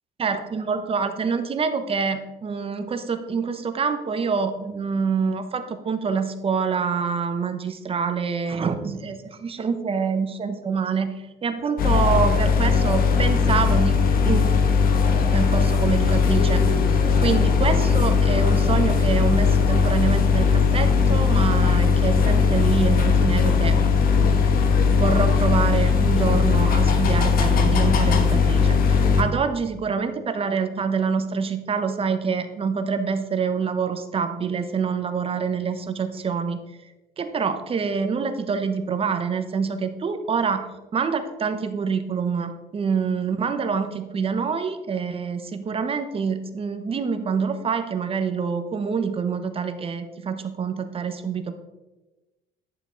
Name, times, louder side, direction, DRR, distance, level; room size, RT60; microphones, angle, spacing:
voice 1, 0.2-11.1 11.4-14.4 15.3-16.9 17.2-23.8 24.3-24.4 25.0-36.6 37.2-40.6 40.9-51.5, right 5 dB, 35° right, 8 dB, 1.0 m, -26 dB
sound 1, 11.8-29.2, left 5 dB, 60° left, 1.2 m, -19 dB
11.0 x 7.2 x 3.9 m, 1.1 s
cardioid pair, 110°, 17 cm